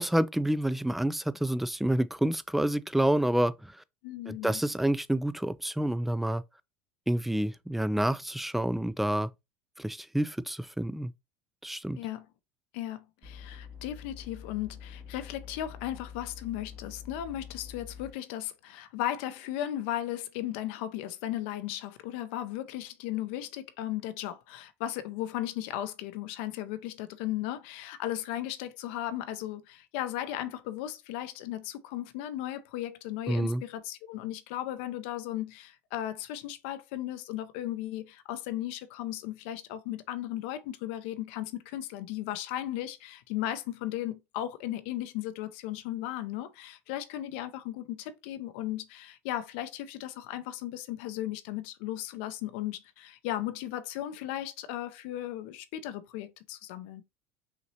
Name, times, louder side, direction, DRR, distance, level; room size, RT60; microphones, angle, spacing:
voice 1, 0.0-3.8 4.3-6.4 7.1-9.3 9.8-11.1 11.6-12.0 33.3-33.6, right 1 dB, 5° right, 0.3 m, -28 dB
voice 2, 4.0-4.6 12.0-12.3 12.7-57.0, left 13 dB, 70° left, 0.6 m, -36 dB
sound 1, 13.2-18.1, left 7 dB, 45° right, 1.4 m, -46 dB
5.7 x 2.9 x 2.8 m
hypercardioid pair, 75°, 6 cm